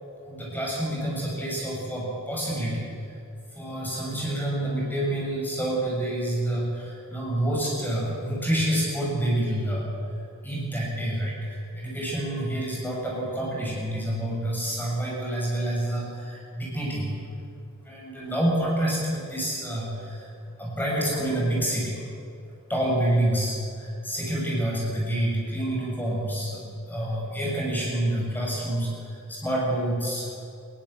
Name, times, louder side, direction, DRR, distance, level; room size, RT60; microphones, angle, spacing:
voice 1, 0.2-3.1 3.5-9.9 10.4-17.2 17.7-20.3 20.6-22.0 22.7-30.3, right 1 dB, 10° left, -4 dB, 6.7 m, -28 dB
20.5 x 17.0 x 8.1 m, 2.5 s
head